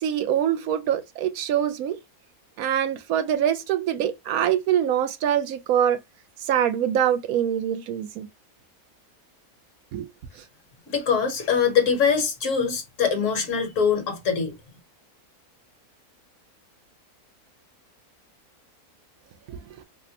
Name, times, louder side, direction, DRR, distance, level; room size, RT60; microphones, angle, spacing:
voice 1, 0.0-2.0 2.6-6.0 6.4-8.3 9.9-10.1 19.5-19.6, right 10 dB, 75° right, 1.0 m, -24 dB
voice 2, 10.9-14.5, left 6 dB, 60° left, 1.3 m, -23 dB
4.1 x 2.1 x 2.7 m
omnidirectional pair, 1.6 m